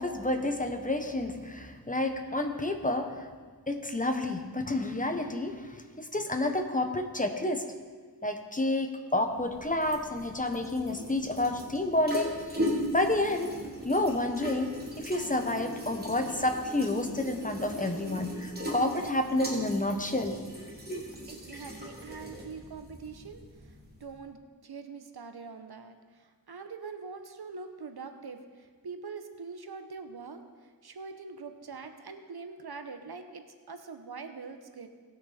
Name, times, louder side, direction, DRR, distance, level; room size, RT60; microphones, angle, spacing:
voice 1, 0.0-3.3 3.7-7.7 8.2-12.3 12.6-12.7 12.9-13.6 13.8-21.1, left 1 dB, 20° left, 5 dB, 1.0 m, -30 dB
sound 1, 9.2-24.2, equal, 25° right, 2.8 m, -39 dB
voice 2, 21.3-34.9, right 5 dB, 80° right, 7 dB, 0.9 m, -44 dB
19.0 x 6.5 x 4.2 m, 1.5 s
wide cardioid pair, 60°, 38 cm